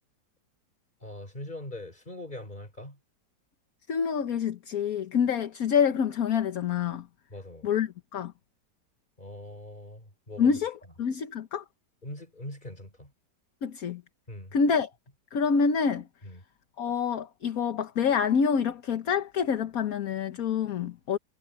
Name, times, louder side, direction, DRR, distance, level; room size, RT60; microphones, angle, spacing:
voice 1, 1.0-3.0 7.3-7.7 9.2-10.5 12.0-13.1 14.3-14.6 16.2-16.4, left 1 dB, 25° left, 5.2 m, -42 dB
voice 2, 3.9-7.0 7.6-8.3 10.4-11.6 13.6-14.0 14.5-14.9 15.3-16.0 16.8-21.2, left 6 dB, 55° left, 1.4 m, -27 dB
omnidirectional pair, 1.9 m